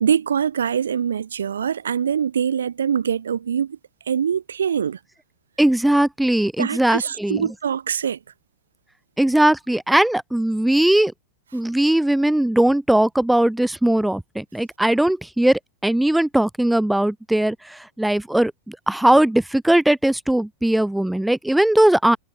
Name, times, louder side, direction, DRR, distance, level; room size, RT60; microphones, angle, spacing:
voice 1, 0.0-3.8 4.1-5.0 6.6-8.2, right 8 dB, 70° right, 0.4 m, -23 dB
voice 2, 5.6-7.5 9.2-11.1 11.5-22.2, right 1 dB, 5° right, 0.4 m, -19 dB
figure-of-eight pair, 90°, 0 cm